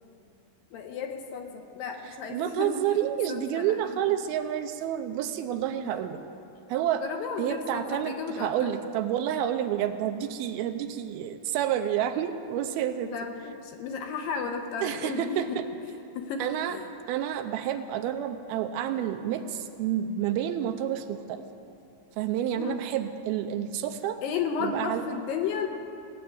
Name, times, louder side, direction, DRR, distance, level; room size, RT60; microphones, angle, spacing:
voice 1, 0.7-3.0 3.3-4.2 5.8-6.0 7.0-8.7 13.0-16.8 22.6-22.8 24.2-25.7, left 5 dB, 75° left, 4 dB, 2.4 m, -34 dB
voice 2, 2.3-6.2 6.7-7.0 7.4-13.1 14.8-15.7 16.4-16.8 17.1-21.4 22.2-24.2 24.6-25.0, right 10 dB, 80° right, 8 dB, 2.5 m, -29 dB
17.5 x 7.7 x 9.4 m, 2.6 s
omnidirectional pair, 4.5 m